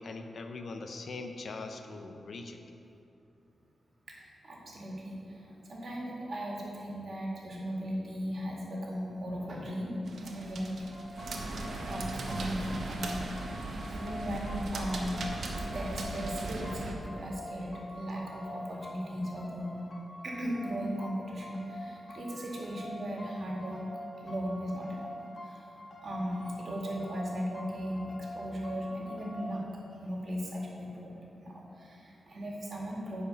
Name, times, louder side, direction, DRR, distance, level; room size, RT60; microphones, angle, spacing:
voice 1, 0.0-2.6, left 3 dB, 60° left, 6 dB, 0.7 m, -41 dB
voice 2, 4.1-10.0 10.2-11.0 11.9-13.1 13.9-19.8 20.2-23.8 24.2-25.1 25.4-25.6 26.0-33.2, equal, 55° right, -2 dB, 2.1 m, -37 dB
sound 1, 10.1-17.0, right 2 dB, 70° right, 1.1 m, -38 dB
sound 2, 10.8-29.5, left 1 dB, 45° left, 1.4 m, -46 dB
10.0 x 5.1 x 6.9 m, 2.7 s
wide cardioid pair, 110°, 0 cm